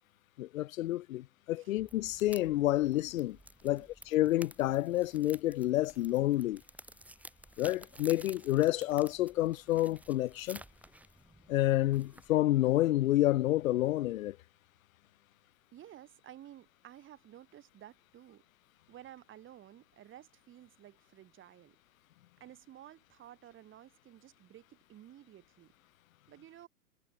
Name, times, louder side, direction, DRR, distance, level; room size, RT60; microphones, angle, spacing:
voice 1, 0.4-3.4 3.6-6.6 7.6-10.6 11.5-14.4, left 15 dB, 60° left, 0.5 m, -29 dB
sound 1, 1.8-12.6, right 1 dB, 5° right, 3.0 m, -54 dB
voice 2, 15.7-18.4 18.9-21.8 22.4-25.7 26.3-26.7, right 12 dB, 25° right, 6.3 m, -54 dB
hypercardioid pair, 115°, 46 cm